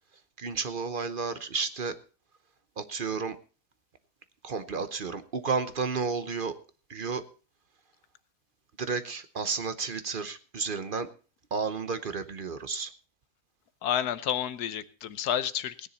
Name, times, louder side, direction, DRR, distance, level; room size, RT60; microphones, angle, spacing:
voice 1, 0.4-2.0 2.8-3.4 4.4-6.5 6.9-7.2 8.8-11.1 11.5-12.9, right 5 dB, 40° right, 12 dB, 0.9 m, -32 dB
voice 2, 13.8-15.9, left 10 dB, 85° left, 15 dB, 1.3 m, -30 dB
18.0 x 10.0 x 4.1 m, 0.37 s
omnidirectional pair, 1.6 m